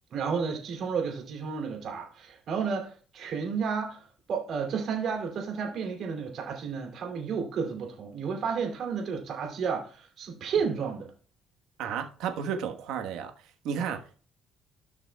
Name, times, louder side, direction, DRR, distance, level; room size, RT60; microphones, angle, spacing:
voice 1, 0.1-11.1, right 6 dB, 60° right, 2.7 m, -32 dB
voice 2, 11.8-13.3 13.6-14.2, right 7 dB, 85° right, 1.3 m, -32 dB
14.5 x 6.1 x 2.3 m
cardioid pair, 115°, 0 cm